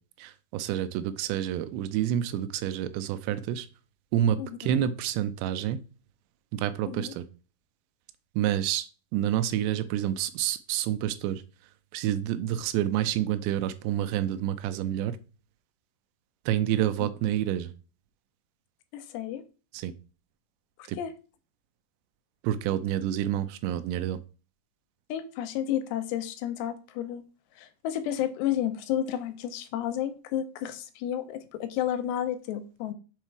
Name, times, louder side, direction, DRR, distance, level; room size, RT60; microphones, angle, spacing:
voice 1, 0.2-3.6 4.1-5.8 6.5-7.2 8.4-8.9 9.1-11.4 11.9-15.1 16.5-17.7 19.7-19.9 20.9-21.0 22.4-24.2, right 11 dB, 85° right, 2.8 m, -28 dB
voice 2, 18.9-19.4 20.8-21.1 25.1-27.2 27.6-32.9, left 10 dB, 80° left, 2.8 m, -31 dB
7.4 x 4.2 x 4.6 m
omnidirectional pair, 5.0 m